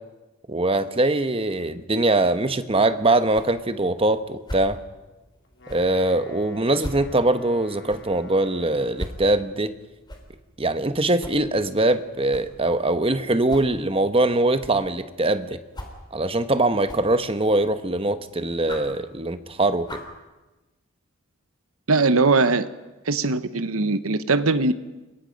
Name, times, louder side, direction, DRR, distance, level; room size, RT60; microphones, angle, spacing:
voice 1, 0.5-4.8 5.7-9.7 10.6-15.6 16.1-20.0, right 2 dB, 25° right, 10 dB, 1.0 m, -22 dB
sound 1, 2.2-20.2, equal, 20° left, 3.3 m, -43 dB
Wind instrument woodwind instrument, 5.4-9.3, left 2 dB, 55° left, 3.9 m, -47 dB
voice 2, 21.9-22.7 23.1-24.7, right 3 dB, 70° right, 13 dB, 1.0 m, -20 dB
29.0 x 22.5 x 5.3 m, 1.1 s
head